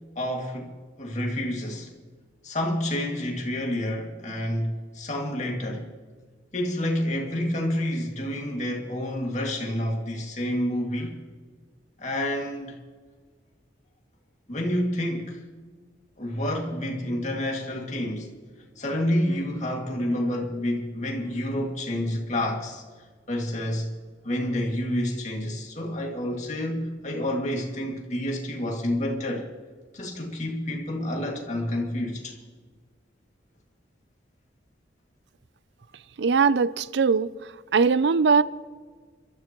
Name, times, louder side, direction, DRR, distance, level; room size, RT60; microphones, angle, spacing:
voice 1, 0.2-1.9 2.4-5.9 6.5-11.2 12.0-12.8 14.5-15.4 16.2-18.4 18.8-22.8 23.3-23.9 24.2-29.5 29.9-32.3, left 1 dB, 40° left, 2.2 m, -29 dB
voice 2, 36.2-38.4, right 5 dB, 80° right, 0.5 m, -21 dB
27.0 x 13.0 x 3.0 m
head